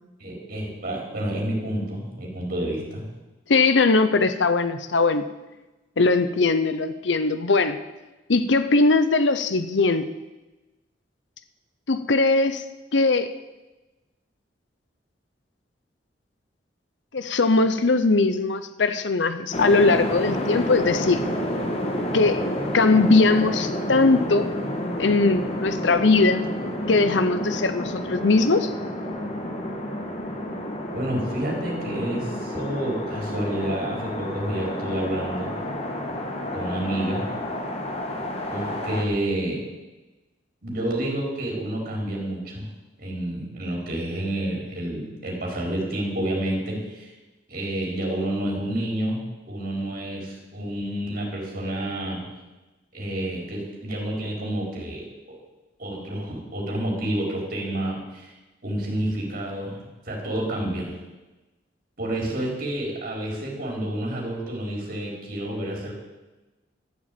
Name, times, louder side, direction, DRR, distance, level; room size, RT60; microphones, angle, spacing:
voice 1, 0.2-3.0 30.9-35.5 36.5-37.3 38.5-39.6 40.6-42.7 43.0-47.1 47.5-52.2 52.9-55.4 55.8-58.3 58.6-59.8 60.0-60.9 62.0-65.9, right 1 dB, 50° right, -2 dB, 4.5 m, -29 dB
voice 2, 3.5-5.2 6.0-7.8 8.3-10.1 11.9-12.6 12.9-13.3 17.1-21.2 22.1-22.4 22.7-24.5 25.0-26.4 26.9-28.7, left 3 dB, 80° left, 11 dB, 0.8 m, -20 dB
sound 1, 19.5-39.0, left 1 dB, 35° left, 1.9 m, -30 dB
13.0 x 7.6 x 8.5 m, 1.1 s
head